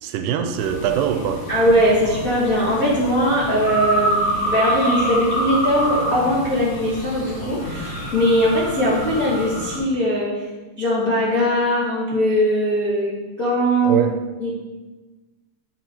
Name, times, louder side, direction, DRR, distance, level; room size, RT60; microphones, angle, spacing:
voice 1, 0.0-1.5 13.8-14.2, right 9 dB, 90° right, 8 dB, 2.7 m, -23 dB
sound 1, 0.6-9.8, equal, 50° left, 2.1 m, -27 dB
voice 2, 1.5-10.5 10.8-14.1 14.4-14.5, equal, 75° left, -8 dB, 0.8 m, -20 dB
10.5 x 6.6 x 4.5 m, 1.3 s
omnidirectional pair, 4.8 m